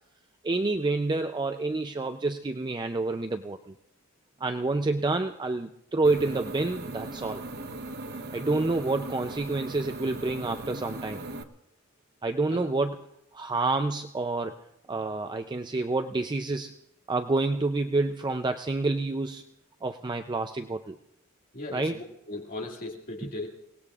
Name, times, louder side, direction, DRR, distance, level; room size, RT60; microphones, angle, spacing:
voice 1, 0.4-3.7 4.4-7.4 8.3-11.2 12.2-13.0 13.3-14.6 14.9-16.7 17.1-19.4 19.8-21.0 21.7-22.0 23.2-23.3, right 3 dB, 20° right, 6 dB, 0.5 m, -28 dB
sound 1, 6.0-11.4, right 2 dB, 50° right, 1.0 m, -38 dB
voice 2, 21.5-23.5, left 2 dB, 40° left, 0 dB, 2.2 m, -37 dB
29.5 x 18.5 x 2.4 m, 0.85 s
head